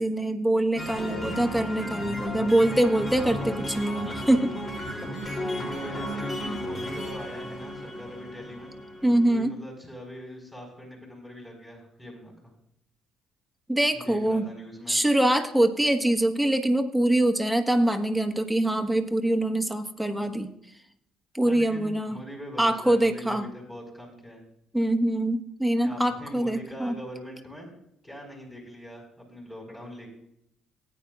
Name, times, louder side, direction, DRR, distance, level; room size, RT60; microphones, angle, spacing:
voice 1, 0.0-4.5 9.0-9.5 13.7-14.5 14.9-20.5 21.3-22.2 22.6-23.5 24.7-27.0, right 1 dB, ahead, 4 dB, 1.5 m, -24 dB
sound 1, 0.8-9.3, left 1 dB, 35° left, 3.1 m, -35 dB
sound 2, 0.9-6.7, right 2 dB, 65° left, 4.4 m, -40 dB
voice 2, 5.5-8.7 9.3-12.5 13.9-15.0 21.4-24.4 25.8-27.7 28.0-30.1, equal, 15° left, -1 dB, 5.0 m, -42 dB
18.5 x 9.3 x 2.5 m, 0.76 s
hypercardioid pair, 50°, 0 cm